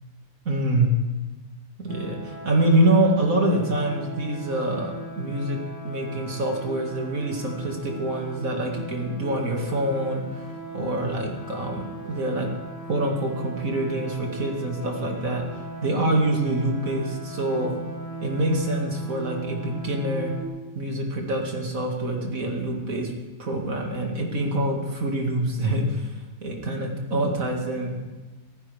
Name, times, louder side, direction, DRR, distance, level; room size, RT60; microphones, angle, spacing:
voice 1, 0.4-0.9 1.8-5.6 5.8-10.5 10.7-12.5 12.9-15.4 15.8-17.7 18.2-20.3 20.7-23.1 23.4-28.0, right 1 dB, 70° right, 0 dB, 2.6 m, -25 dB
sound 1, 1.9-20.4, right 1 dB, 35° left, 1.6 m, -38 dB
18.0 x 14.5 x 3.5 m, 1.2 s
omnidirectional pair, 1.5 m